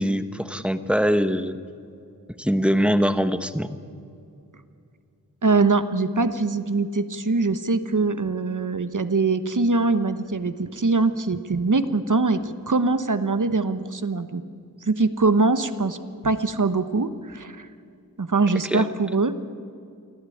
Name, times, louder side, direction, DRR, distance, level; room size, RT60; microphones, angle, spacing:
voice 1, 0.0-1.6 2.4-3.7 18.7-18.8, equal, 5° right, 10 dB, 1.1 m, -22 dB
voice 2, 5.4-14.4 14.8-16.0 16.2-17.7 18.2-19.3, right 3 dB, 60° right, 11 dB, 1.1 m, -23 dB
24.5 x 14.5 x 8.6 m, 2.5 s
wide cardioid pair, 60°, 36 cm